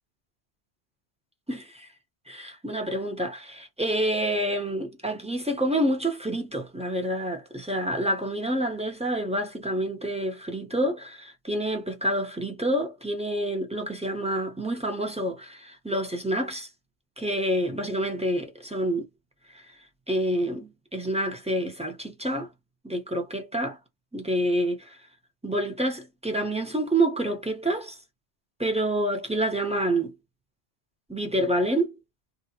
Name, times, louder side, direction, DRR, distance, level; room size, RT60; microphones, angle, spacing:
voice 1, 1.5-1.9 2.3-16.7 17.2-19.0 19.5-19.6 20.1-22.5 22.8-23.8 24.1-25.0 25.4-28.0 28.6-30.2 31.1-32.0, right 1 dB, 5° right, 1.0 m, -28 dB
3.1 x 2.5 x 2.8 m
omnidirectional pair, 1.1 m